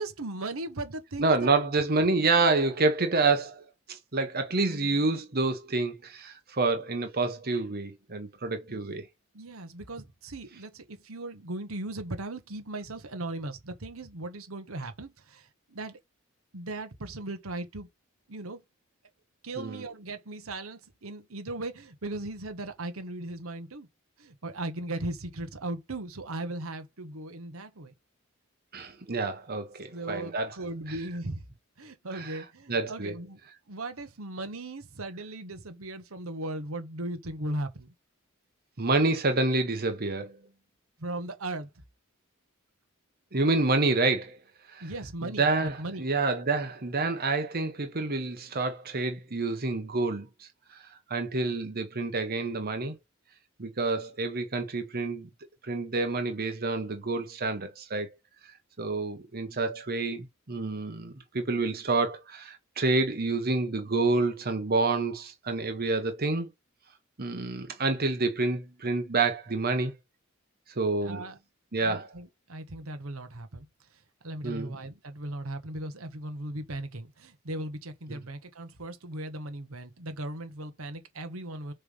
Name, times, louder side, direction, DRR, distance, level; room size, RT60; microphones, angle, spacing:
voice 1, 0.0-1.5 8.7-8.9 9.3-16.0 16.5-17.9 18.3-18.6 19.4-23.9 24.2-27.9 29.9-31.4 31.8-33.4 33.7-37.9 41.0-41.7 44.8-46.1 71.0-71.4 71.8-73.7 74.2-81.7, right 2 dB, 80° right, 1.3 m, -37 dB
voice 2, 1.2-9.1 19.6-19.8 28.7-30.5 30.9-31.0 32.1-32.4 32.7-33.1 38.8-40.3 43.3-44.4 44.7-44.8 45.2-50.3 51.1-53.0 53.6-55.3 55.6-58.1 58.8-66.5 67.2-69.9 70.8-71.2 71.7-72.1 74.4-74.7 78.1-78.2, right 3 dB, 45° right, 1.1 m, -28 dB
6.7 x 3.4 x 5.5 m
head